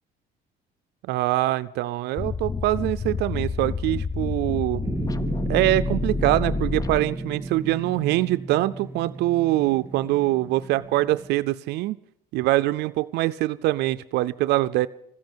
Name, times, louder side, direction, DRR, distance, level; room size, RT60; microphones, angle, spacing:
voice 1, 1.1-4.8 5.5-12.0 12.3-14.9, right 17 dB, 80° right, 14 dB, 0.5 m, -24 dB
sound 1, 2.2-7.4, left 4 dB, 20° left, 0.5 m, -29 dB
sound 2, 4.8-11.3, right 2 dB, 15° right, 3.1 m, -34 dB
14.0 x 10.5 x 7.9 m, 0.75 s
cardioid pair, 110°, 17 cm